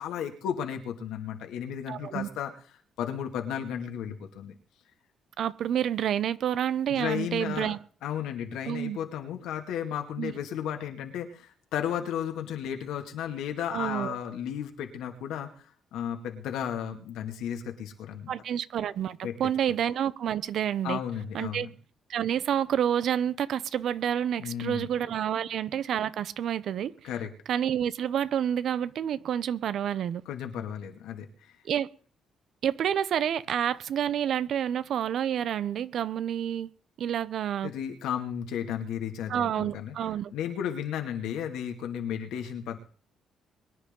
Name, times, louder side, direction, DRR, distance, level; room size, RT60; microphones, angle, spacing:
voice 1, 0.0-2.5 3.0-4.6 6.9-7.8 8.0-15.7 15.9-18.3 19.2-19.4 20.8-21.7 24.4-24.9 27.0-27.3 30.3-31.6 37.6-39.9 40.3-42.8, left 9 dB, 85° left, 2.3 m, -34 dB
voice 2, 1.9-2.3 5.4-7.8 8.7-9.0 10.2-10.3 13.7-14.2 18.3-21.0 21.3-21.7 22.1-26.9 27.5-30.2 31.6-31.9 32.6-36.7 37.0-37.7 39.3-40.3, right 9 dB, 70° right, 0.8 m, -29 dB
23.5 x 10.0 x 3.8 m
cardioid pair, 90°, 0 cm